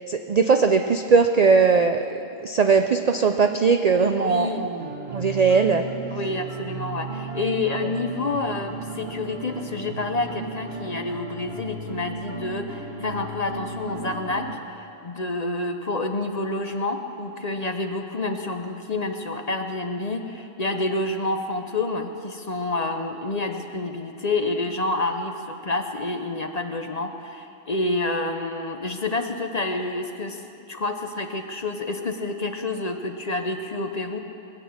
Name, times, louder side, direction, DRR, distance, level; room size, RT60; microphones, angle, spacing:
voice 1, 0.1-5.8, right 5 dB, 65° right, 6 dB, 0.4 m, -20 dB
voice 2, 4.2-4.7 6.1-30.4 30.7-34.2, left 2 dB, 40° left, 5 dB, 0.7 m, -28 dB
sound 1, 4.8-14.5, right 4 dB, 50° right, 1.5 m, -35 dB
20.0 x 8.5 x 7.2 m, 2.7 s
omnidirectional pair, 1.4 m